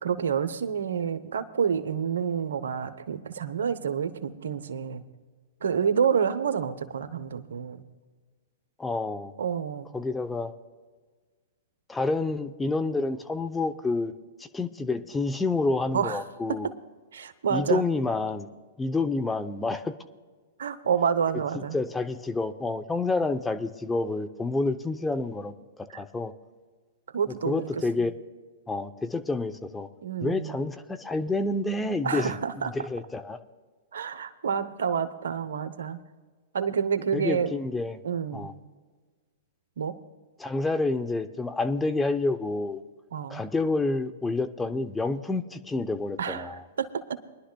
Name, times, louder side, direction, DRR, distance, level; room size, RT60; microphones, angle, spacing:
voice 1, 0.0-5.0 5.6-7.8 9.4-9.9 15.9-16.2 17.1-17.8 20.6-21.8 25.9-26.0 27.1-28.1 30.0-30.6 32.0-32.7 33.9-36.0 36.5-37.5 38.0-38.5 39.8-39.9 43.1-43.4 46.2-46.9, right 7 dB, 75° right, 11 dB, 0.8 m, -28 dB
voice 2, 8.8-9.3 9.9-10.5 11.9-14.1 14.4-16.7 17.5-18.5 18.8-19.9 21.5-26.3 27.4-28.1 28.7-29.9 30.2-32.3 32.6-33.4 37.1-38.0 38.3-38.5 40.4-42.8 43.3-46.6, left 3 dB, 10° left, 8 dB, 0.7 m, -28 dB
23.5 x 11.5 x 2.3 m, 1.4 s
hypercardioid pair, 115°, 0 cm